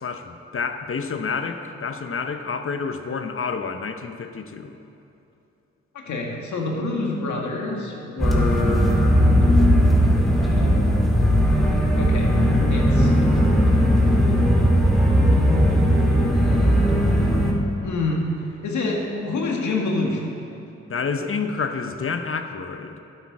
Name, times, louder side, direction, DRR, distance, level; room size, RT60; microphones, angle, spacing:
voice 1, 0.0-4.8 20.9-23.0, left 5 dB, 45° left, 7 dB, 0.8 m, -29 dB
voice 2, 5.9-9.2 10.4-11.0 12.0-12.3 12.7-13.1 15.4-15.8 16.5-16.6 17.8-18.2 18.6-20.3, left 3 dB, 75° left, 0 dB, 1.8 m, -27 dB
sound 1, 8.2-17.5, equal, ahead, 2.1 m, -18 dB
12.5 x 8.4 x 4.8 m, 2.8 s
supercardioid pair, 45°, 29 cm